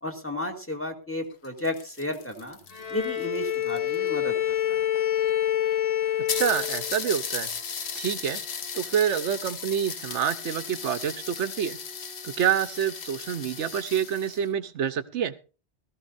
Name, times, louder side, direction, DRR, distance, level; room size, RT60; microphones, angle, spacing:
voice 1, 0.0-2.6 2.9-4.8, left 1 dB, 10° left, 3 dB, 2.0 m, -33 dB
sound 1, 1.3-4.1 5.0-5.1 5.3-5.4 5.7-5.8 6.3-14.5, left 6 dB, 65° left, 1.3 m, -36 dB
Bowed string instrument, 2.7-7.1, left 11 dB, 35° left, 0.9 m, -27 dB
voice 2, 6.2-7.5 7.9-8.4 8.7-11.8 12.2-15.3, right 9 dB, 80° right, 14 dB, 1.1 m, -27 dB
18.5 x 14.5 x 2.6 m, 0.34 s
omnidirectional pair, 1.2 m